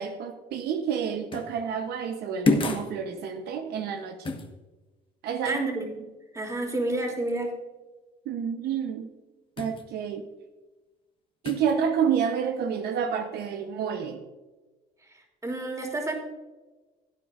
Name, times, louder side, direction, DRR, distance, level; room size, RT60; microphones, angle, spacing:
voice 1, 0.0-4.4 5.2-5.6 8.3-9.1 9.6-10.2 11.4-14.2, right 7 dB, 70° right, 6 dB, 0.9 m, -29 dB
sound 1, 1.3-1.6 2.4-2.9 4.2-4.5 9.6-9.8 11.4-11.7, left 3 dB, 30° left, 1.3 m, -27 dB
voice 2, 5.4-6.1 6.3-7.5 15.1-16.2, right 2 dB, 20° right, 0 dB, 2.9 m, -30 dB
16.5 x 9.6 x 2.5 m, 1.2 s
cardioid pair, 110°, 17 cm